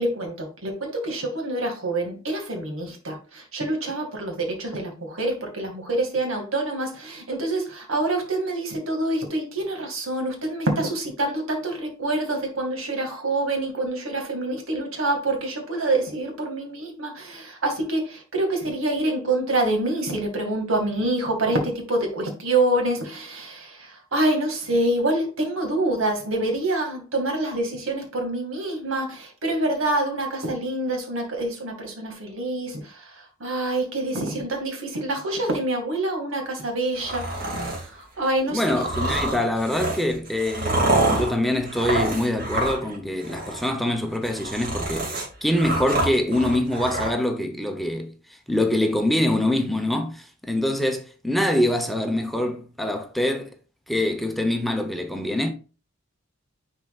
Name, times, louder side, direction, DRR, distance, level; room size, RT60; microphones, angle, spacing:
voice 1, 0.0-38.6 39.2-39.4, right 2 dB, 90° right, 2.1 m, -26 dB
sound 1, 36.9-37.9 38.7-43.0 43.2-43.7 44.1-47.1, right 2 dB, 45° right, 2.2 m, -27 dB
voice 2, 38.5-48.1 48.5-53.5 53.9-55.5, left 1 dB, ahead, 0.8 m, -24 dB
9.9 x 4.4 x 2.4 m
head